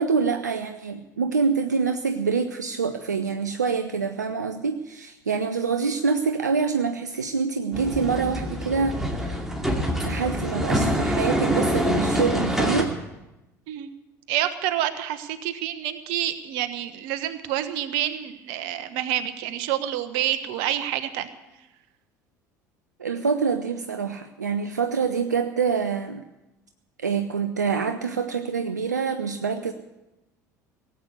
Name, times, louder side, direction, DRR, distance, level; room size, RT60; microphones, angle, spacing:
voice 1, 0.0-9.4 9.9-12.9 23.0-26.2 27.0-29.7, right 5 dB, 85° right, 7 dB, 0.6 m, -26 dB
sound 1, 7.7-12.8, equal, 5° right, 2.4 m, -25 dB
voice 2, 14.3-21.3, right 12 dB, 60° right, 11 dB, 1.1 m, -28 dB
18.0 x 8.2 x 8.4 m, 0.97 s
figure-of-eight pair, 65°, 9 cm